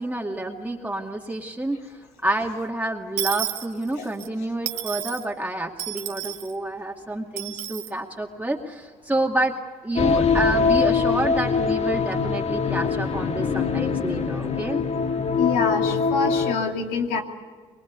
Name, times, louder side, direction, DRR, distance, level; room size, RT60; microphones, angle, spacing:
voice 1, 0.0-1.8 2.2-9.5 9.8-14.8, right 1 dB, 10° right, 0 dB, 2.4 m, -28 dB
Dishes pots and pans / Coin (dropping), 3.2-4.3 4.7-5.2 5.8-6.5 7.4-7.9, right 14 dB, 85° right, 1.5 m, -31 dB
sound 1, 10.0-16.5, left 5 dB, 45° left, 1.8 m, -23 dB
voice 2, 15.4-17.2, left 4 dB, 90° left, 3 dB, 2.7 m, -25 dB
25.5 x 22.5 x 8.3 m, 1.5 s
supercardioid pair, 65°, 14 cm